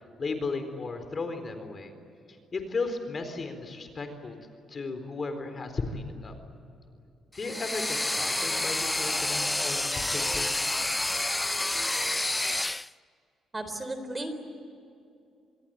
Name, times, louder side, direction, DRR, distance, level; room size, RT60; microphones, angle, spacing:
voice 1, 0.2-1.9 2.5-4.4 4.7-6.3 7.3-10.6, left 3 dB, 40° left, 7 dB, 4.1 m, -35 dB
sound 1, 7.4-12.9, left 2 dB, 10° left, 0.5 m, -29 dB
voice 2, 13.5-14.3, right 1 dB, 20° right, 8 dB, 3.9 m, -34 dB
26.5 x 22.0 x 9.2 m, 2.6 s
cardioid pair, 90°, 0 cm